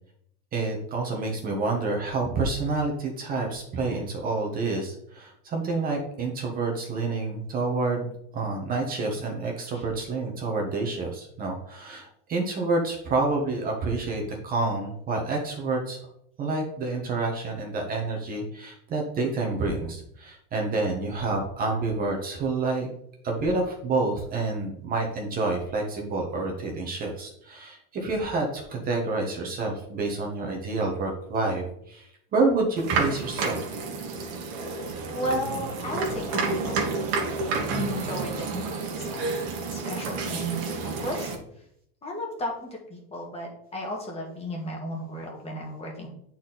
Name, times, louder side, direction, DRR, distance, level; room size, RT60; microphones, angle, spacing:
voice 1, 0.5-16.0 16.4-22.9 23.2-33.6, right 3 dB, 30° right, 0 dB, 1.3 m, -28 dB
sound 1, 32.8-41.4, right 4 dB, 50° right, 1.6 m, -30 dB
voice 2, 35.1-37.1 37.7-39.4 39.7-41.3 42.0-46.1, equal, 20° left, 0 dB, 1.8 m, -34 dB
8.3 x 4.4 x 4.1 m, 0.73 s
supercardioid pair, 150°, 31 cm